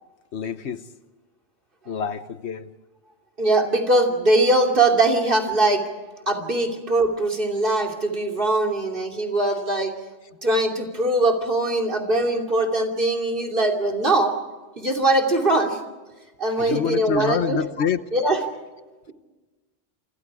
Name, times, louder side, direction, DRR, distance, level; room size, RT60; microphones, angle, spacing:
voice 1, 0.3-0.9 1.9-2.7 16.6-18.0, left 7 dB, 70° left, 13 dB, 1.1 m, -27 dB
voice 2, 3.4-5.8 6.3-9.9 10.4-14.3 14.8-15.8 16.4-17.6 18.1-18.4, right 2 dB, 50° right, 2 dB, 3.0 m, -21 dB
28.0 x 26.0 x 4.8 m, 1.2 s
omnidirectional pair, 1.2 m